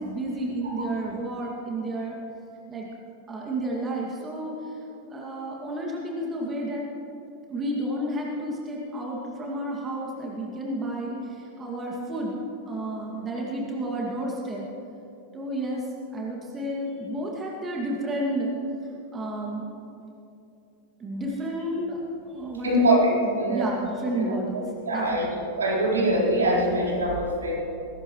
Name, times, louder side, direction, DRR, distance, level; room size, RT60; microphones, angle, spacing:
voice 1, 0.0-2.2 2.7-2.9 3.3-4.7 5.1-6.8 7.5-12.3 12.7-14.7 15.3-15.9 16.1-18.5 19.1-19.7 21.0-22.0 22.3-22.9 23.2-24.6 24.9-25.5, right 1 dB, 20° right, -2 dB, 2.3 m, -31 dB
voice 2, 22.6-23.7 24.2-24.3 24.9-25.3 25.5-27.5, right 1 dB, 70° right, -5 dB, 4.3 m, -23 dB
21.0 x 18.0 x 3.2 m, 2.7 s
figure-of-eight pair, 90°, 0 cm